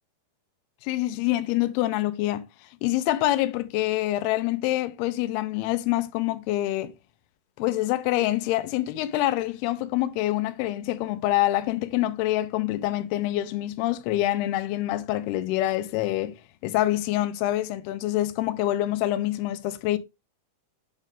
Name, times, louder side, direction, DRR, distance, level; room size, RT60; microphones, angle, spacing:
voice 1, 0.8-2.4 2.8-6.9 7.6-16.3 16.6-20.0, left 15 dB, 90° left, 2.6 m, -26 dB
6.2 x 5.4 x 3.7 m
omnidirectional pair, 4.5 m